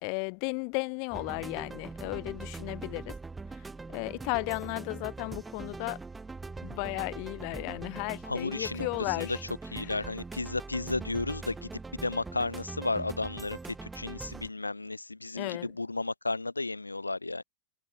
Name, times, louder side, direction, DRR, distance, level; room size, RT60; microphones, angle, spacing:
voice 1, 0.0-3.1 3.5-6.0 6.6-9.4 9.8-10.0 15.3-15.7, left 40 dB or more, 45° left, 0.7 m, -35 dB
sound 1, 1.1-14.5, right 3 dB, 10° right, 0.8 m, -42 dB
voice 2, 8.2-9.4 9.7-17.4, left 3 dB, 80° left, 0.6 m, -33 dB
figure-of-eight pair, 90°, 0 cm